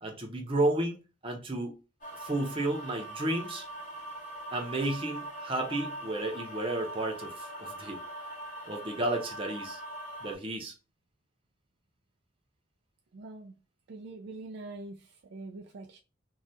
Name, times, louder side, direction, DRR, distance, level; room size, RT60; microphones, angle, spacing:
voice 1, 0.0-1.8 2.2-3.6 4.5-8.0 8.7-9.8 10.2-10.7, right 2 dB, 25° right, 0.7 m, -32 dB
sound 1, 2.0-10.4, right 1 dB, 40° left, 1.0 m, -42 dB
voice 2, 13.1-13.5 13.9-16.0, right 2 dB, 60° right, 0.4 m, -44 dB
2.7 x 2.3 x 3.3 m
head